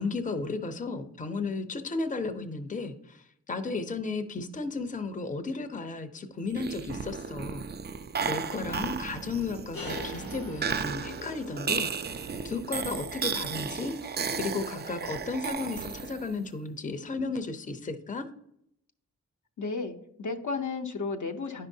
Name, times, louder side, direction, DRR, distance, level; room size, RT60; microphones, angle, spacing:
voice 1, 0.0-3.2 3.5-7.6 8.2-18.3, left 3 dB, 25° left, 9 dB, 0.6 m, -34 dB
sound 1, 6.5-16.4, right 6 dB, 30° right, 0.4 m, -34 dB
sound 2, 9.7-15.5, left 2 dB, 85° left, 1.7 m, -46 dB
voice 2, 19.6-21.7, left 4 dB, 60° left, 4 dB, 0.7 m, -33 dB
9.6 x 5.5 x 2.7 m, 0.74 s
cardioid pair, 45°, 33 cm